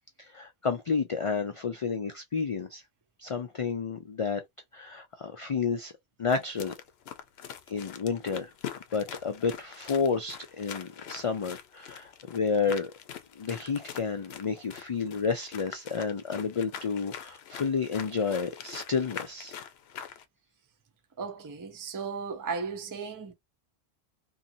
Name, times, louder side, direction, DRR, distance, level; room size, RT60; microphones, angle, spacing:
voice 1, 0.2-2.8 3.2-4.4 4.7-5.9 6.2-6.7 7.7-8.5 8.9-12.9 13.4-19.5, left 5 dB, 50° left, 0.4 m, -30 dB
sound 1, 6.3-20.2, left 9 dB, 80° left, 0.8 m, -43 dB
voice 2, 21.2-23.3, right 5 dB, 25° right, 0.5 m, -35 dB
2.8 x 2.5 x 2.6 m
omnidirectional pair, 1.1 m